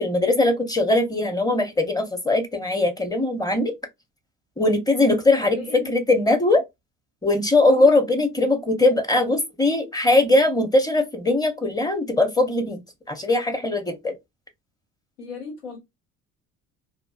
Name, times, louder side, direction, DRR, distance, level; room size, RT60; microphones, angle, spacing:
voice 1, 0.0-3.7 4.6-6.6 7.2-12.8 13.1-14.1, left 2 dB, 10° left, 0.7 m, -20 dB
voice 2, 5.4-5.9 7.6-8.0 15.2-15.8, left 4 dB, 85° left, 1.3 m, -36 dB
2.6 x 2.3 x 2.2 m
hypercardioid pair, 60°, 40 cm